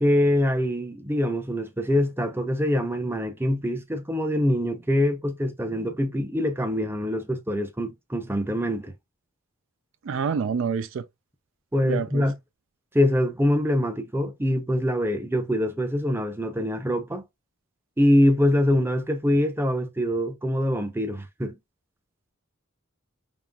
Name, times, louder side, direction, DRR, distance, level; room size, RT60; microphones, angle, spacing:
voice 1, 0.0-8.9 11.7-12.3 12.9-17.2 18.0-21.6, left 1 dB, 10° right, 0.6 m, -24 dB
voice 2, 10.0-11.0 11.8-12.3, right 6 dB, 65° right, 0.4 m, -27 dB
5.3 x 2.9 x 2.3 m
head